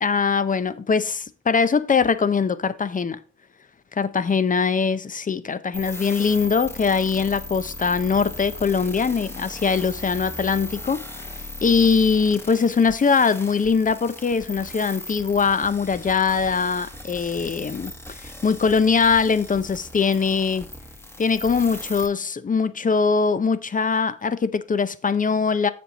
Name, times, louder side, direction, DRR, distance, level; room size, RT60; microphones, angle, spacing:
voice 1, 0.0-3.2 3.9-20.7 21.2-25.7, left 5 dB, 25° left, 0.6 m, -22 dB
sound 1, 5.7-22.1, left 1 dB, 10° left, 1.2 m, -38 dB
7.5 x 6.9 x 4.0 m
cardioid pair, 90°, 30 cm